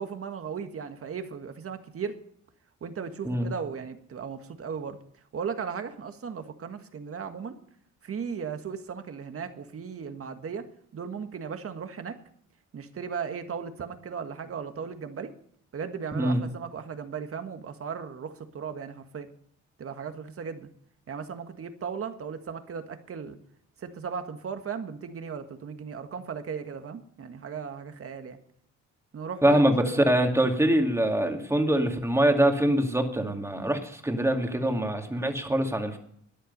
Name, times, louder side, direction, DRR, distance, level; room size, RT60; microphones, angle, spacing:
voice 1, 0.0-2.2 2.8-5.0 5.3-7.6 8.0-10.7 10.9-12.2 12.7-15.3 15.7-19.3 19.8-20.7 21.1-23.4 23.8-28.4 29.1-29.9, right 6 dB, 50° right, 8 dB, 1.7 m, -36 dB
voice 2, 29.4-36.0, right 1 dB, 10° right, 3 dB, 2.4 m, -24 dB
14.0 x 10.0 x 5.5 m, 0.66 s
cardioid pair, 90°, 30 cm